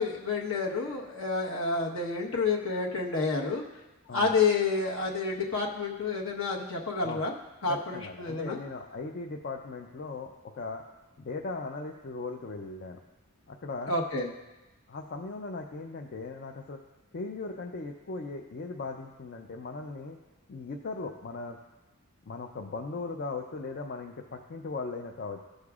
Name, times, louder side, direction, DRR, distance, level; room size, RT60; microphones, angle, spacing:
voice 1, 0.0-3.6 4.1-7.3 7.6-8.6 13.9-14.3, left 4 dB, 65° left, -1 dB, 1.2 m, -29 dB
voice 2, 7.7-10.8 11.2-13.0 13.5-13.9 14.9-16.8 17.1-20.2 20.5-21.6 22.3-25.4, left 3 dB, 50° left, 2 dB, 0.5 m, -38 dB
15.0 x 6.5 x 2.4 m, 1.1 s
head